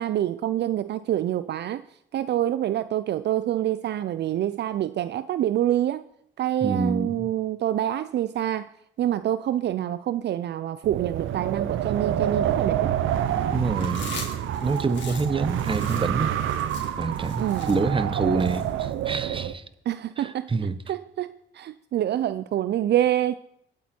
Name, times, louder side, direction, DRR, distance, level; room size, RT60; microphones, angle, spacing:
voice 1, 0.0-1.8 2.1-6.0 6.4-8.7 9.0-12.9 17.4-17.7 19.9-20.5 20.9-23.4, right 12 dB, 60° right, 0.5 m, -26 dB
voice 2, 6.6-7.3 13.5-14.1 14.6-16.4 17.0-19.6 20.2-20.8, right 4 dB, 25° right, 1.1 m, -27 dB
Wind, 10.8-19.5, right 10 dB, 85° right, 0.9 m, -27 dB
Chewing mastication, 13.8-19.2, left 5 dB, 65° left, 3.6 m, -42 dB
23.0 x 8.9 x 4.4 m
cardioid pair, 90°, 20 cm